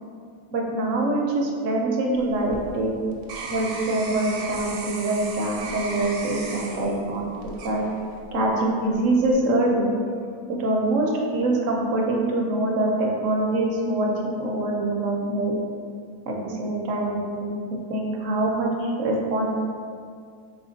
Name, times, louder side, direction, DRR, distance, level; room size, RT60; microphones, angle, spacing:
voice 1, 0.5-2.9 3.3-7.3 7.6-7.8 8.3-9.9 10.6-15.5 16.2-17.5 17.9-19.5, right 2 dB, 65° right, -1 dB, 0.9 m, -24 dB
sound 1, 2.1-8.3 8.9-9.3, right 3 dB, 90° right, 1.1 m, -36 dB
4.2 x 3.4 x 2.7 m, 2.2 s
omnidirectional pair, 1.6 m